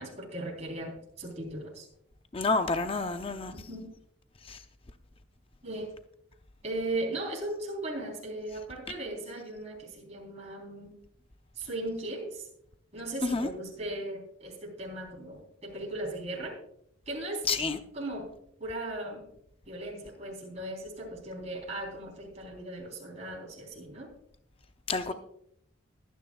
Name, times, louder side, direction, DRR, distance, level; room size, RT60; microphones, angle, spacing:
voice 1, 0.0-1.9 3.5-3.9 5.6-5.9 6.6-11.0 11.6-12.4 12.9-16.5 17.1-17.5 17.9-18.3 18.6-19.2 19.7-24.1, right 1 dB, 30° right, 3.7 m, -37 dB
voice 2, 2.3-3.5 4.5-4.6 13.3-13.5 17.5-17.8 24.9-25.1, left 3 dB, 25° left, 0.6 m, -29 dB
21.5 x 10.0 x 2.3 m
head